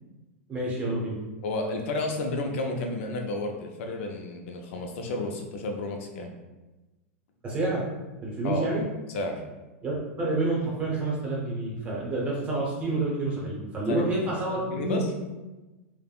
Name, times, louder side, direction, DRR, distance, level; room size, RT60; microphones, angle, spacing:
voice 1, 0.5-1.2 7.4-7.8 8.2-8.8 9.8-15.0, right 2 dB, 20° right, -5 dB, 0.8 m, -28 dB
voice 2, 1.4-6.3 8.4-8.7 9.1-9.4 13.9-14.0 14.5-15.0, left 2 dB, 65° left, 3 dB, 0.5 m, -31 dB
3.3 x 2.1 x 2.3 m, 1.1 s
supercardioid pair, 145°, 7 cm